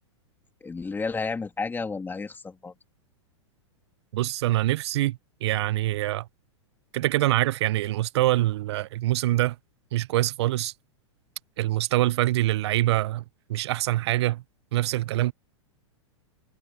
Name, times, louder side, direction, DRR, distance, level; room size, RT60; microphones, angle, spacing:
voice 1, 0.6-2.7, left 4 dB, 10° left, 3.1 m, -31 dB
voice 2, 4.1-6.2 6.9-9.5 9.9-10.7 11.6-13.2 13.5-14.4 14.7-15.3, right 16 dB, 60° right, 0.8 m, -24 dB
hypercardioid pair, 105°, 16 cm